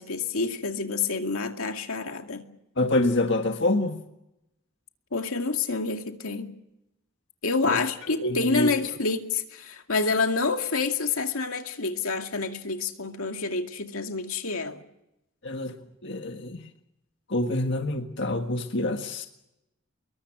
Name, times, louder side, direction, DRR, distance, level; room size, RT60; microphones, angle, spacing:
voice 1, 0.0-2.5 5.1-6.5 7.4-14.8, left 4 dB, 85° left, 5 dB, 2.3 m, -28 dB
voice 2, 2.8-4.0 7.6-7.8 8.2-8.7 15.4-15.7 16.0-16.6 17.3-19.3, left 2 dB, 55° left, 5 dB, 1.7 m, -26 dB
25.5 x 22.0 x 6.1 m, 0.86 s
head